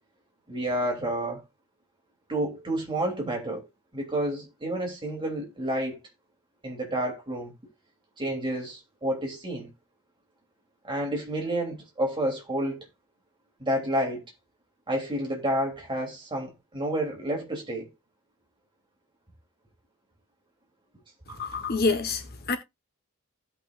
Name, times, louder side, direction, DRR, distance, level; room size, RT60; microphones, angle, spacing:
voice 1, 0.5-1.4 2.3-3.7 3.9-6.0 6.6-7.5 8.2-9.7 10.8-12.9 13.6-14.2 14.9-17.9 21.3-21.6, right 1 dB, 20° right, 3.1 m, -30 dB
voice 2, 21.4-22.6, left 3 dB, 45° left, 1.1 m, -27 dB
16.0 x 5.7 x 2.5 m
head